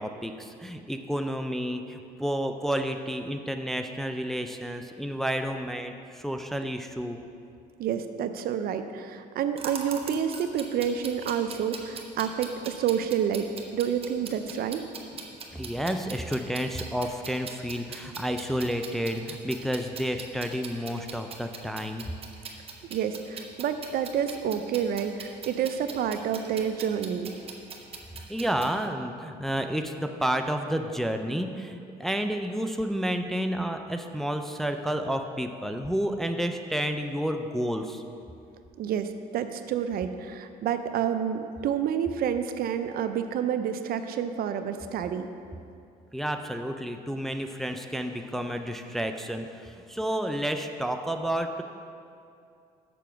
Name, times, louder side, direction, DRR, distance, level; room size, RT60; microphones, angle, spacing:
voice 1, 0.0-7.2 15.5-22.1 28.3-38.0 46.1-51.6, equal, ahead, 5 dB, 0.4 m, -30 dB
voice 2, 7.8-13.5 13.7-14.8 22.9-27.3 38.8-45.3, right 8 dB, 60° right, 9 dB, 0.5 m, -29 dB
sound 1, 9.6-28.8, right 4 dB, 35° right, 0.9 m, -42 dB
6.9 x 5.7 x 6.1 m, 2.5 s
cardioid pair, 110°, 17 cm